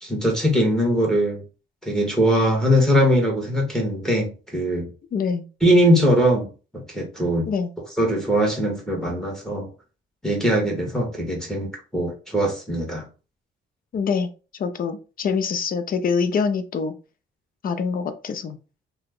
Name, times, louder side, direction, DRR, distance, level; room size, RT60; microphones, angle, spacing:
voice 1, 0.0-1.4 1.8-4.9 5.6-6.5 6.9-7.5 8.0-9.7 10.2-13.0, equal, 5° left, 0 dB, 1.4 m, -21 dB
voice 2, 5.1-5.4 7.5-7.7 13.9-14.3 14.6-16.9 17.6-18.6, left 5 dB, 45° left, 10 dB, 0.5 m, -25 dB
2.9 x 2.2 x 3.7 m, 0.33 s
cardioid pair, 90°, 20 cm